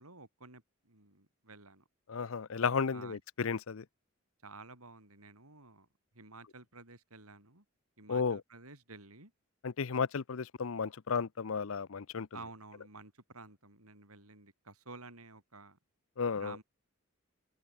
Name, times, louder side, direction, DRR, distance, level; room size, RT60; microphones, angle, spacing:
voice 1, 0.0-1.8 2.9-3.2 4.4-5.9 6.1-7.6 8.0-9.3 12.3-15.8 16.3-16.6, right 3 dB, 85° right, 6.5 m, -52 dB
voice 2, 2.1-3.8 8.1-8.4 9.6-12.3 16.2-16.6, left 5 dB, 70° left, 0.6 m, -33 dB
open air
head